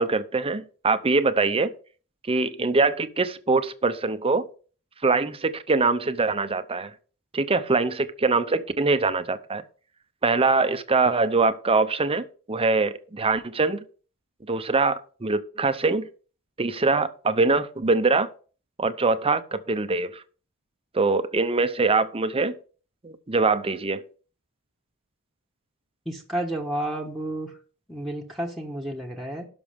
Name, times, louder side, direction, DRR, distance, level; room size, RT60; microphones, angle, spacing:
voice 1, 0.0-1.7 2.3-4.5 5.0-6.9 7.3-9.6 10.2-13.8 14.5-16.1 16.6-18.3 18.8-20.2 20.9-22.6 23.0-24.0, right 3 dB, 25° right, 0.7 m, -23 dB
voice 2, 26.0-27.6 27.9-29.4, right 1 dB, ahead, 1.3 m, -31 dB
17.0 x 6.2 x 3.5 m
head